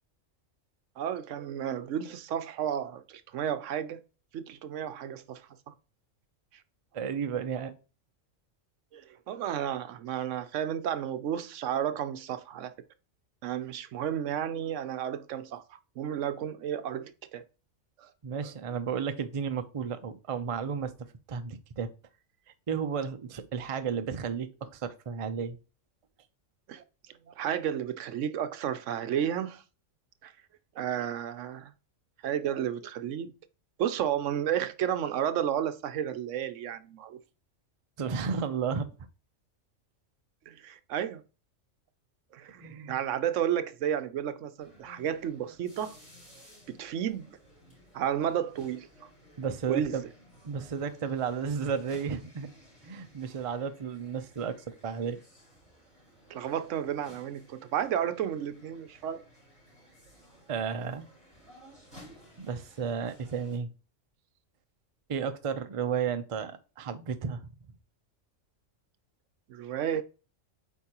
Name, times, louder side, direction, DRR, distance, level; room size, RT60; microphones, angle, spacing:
voice 1, 1.0-4.0 4.3-5.7 8.9-12.7 13.4-17.4 18.0-18.1 26.7-26.8 27.3-29.6 30.2-30.3 30.7-31.7 32.2-33.3 33.8-37.2 40.5-41.2 42.3-46.0 46.7-47.4 47.9-49.1 49.7-50.0 56.3-59.2 69.5-70.0, right 9 dB, 75° right, 1.0 m, -32 dB
voice 2, 6.9-7.7 18.2-20.9 21.3-21.9 22.7-25.6 38.0-38.9 42.6-43.0 49.4-50.0 50.4-52.5 52.8-55.2 60.5-61.0 62.4-63.7 65.1-67.5, right 6 dB, 40° right, 0.5 m, -33 dB
sound 1, 44.6-63.6, equal, 5° left, 4.0 m, -56 dB
8.3 x 4.6 x 2.9 m
omnidirectional pair, 1.3 m